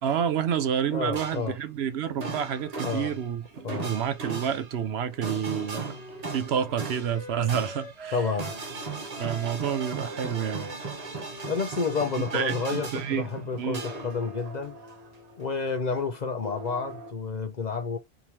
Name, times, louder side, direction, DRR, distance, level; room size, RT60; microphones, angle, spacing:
voice 1, 0.0-5.9 6.3-8.2 9.2-10.7 12.3-13.3 13.6-13.8, right 8 dB, 70° right, 0.9 m, -29 dB
voice 2, 0.9-1.6 2.8-3.1 3.6-3.9 8.1-8.5 11.5-14.8 15.4-18.0, left 4 dB, 50° left, 0.6 m, -30 dB
sound 1, 1.1-1.7 2.1-16.1 16.4-17.1, right 3 dB, 40° right, 0.9 m, -38 dB
Wind instrument woodwind instrument, 5.5-8.6 9.1-12.4, right 1 dB, ahead, 1.2 m, -44 dB
3.6 x 2.9 x 3.0 m
omnidirectional pair, 1.2 m